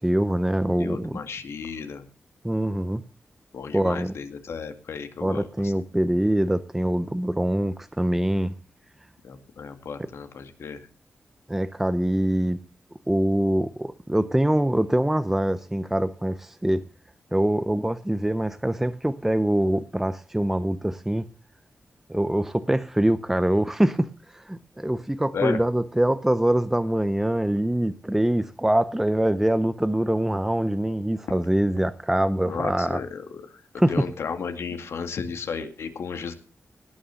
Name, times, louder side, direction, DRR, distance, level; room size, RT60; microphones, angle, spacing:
voice 1, 0.0-1.2 2.4-3.0 3.7-4.1 5.2-8.5 11.5-12.6 13.1-16.8 17.3-21.3 22.1-33.0 33.8-34.0, right 1 dB, 5° right, 0.6 m, -24 dB
voice 2, 0.7-2.0 3.5-5.7 9.2-10.9 25.3-25.6 32.4-33.6 33.9-36.3, left 6 dB, 90° left, 2.1 m, -34 dB
18.5 x 6.4 x 7.0 m
wide cardioid pair, 150°, 4 cm